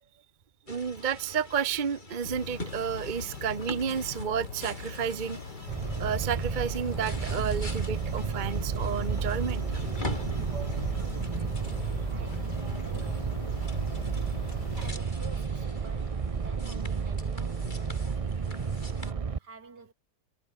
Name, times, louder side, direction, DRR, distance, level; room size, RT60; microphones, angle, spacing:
sound 1, 0.7-19.1, left 1 dB, 25° left, 5.8 m, -44 dB
voice 1, 0.7-5.4 6.0-9.6, right 7 dB, 35° right, 1.0 m, -31 dB
sound 2, 2.2-14.9, left 5 dB, 75° left, 3.3 m, -41 dB
sound 3, 5.7-19.4, right 5 dB, 60° right, 0.3 m, -32 dB
voice 2, 10.5-13.3 14.1-18.1 19.0-19.9, right 4 dB, 75° right, 3.8 m, -50 dB
omnidirectional pair, 1.8 m